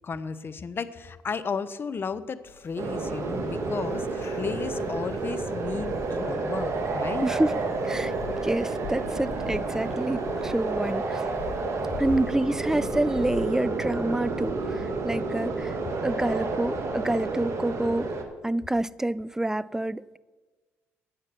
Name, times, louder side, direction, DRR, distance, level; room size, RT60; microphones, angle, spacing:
voice 1, 0.0-7.3, left 5 dB, 40° left, 0.7 m, -34 dB
sound 1, 2.4-13.6, left 7 dB, 60° left, 1.4 m, -45 dB
sound 2, 2.8-18.2, right 3 dB, 55° right, 1.4 m, -30 dB
voice 2, 7.2-8.1 8.4-11.2 12.0-15.8 16.0-18.1 18.4-20.2, right 1 dB, 10° right, 0.3 m, -28 dB
9.0 x 7.7 x 6.7 m
supercardioid pair, 60°, 6 cm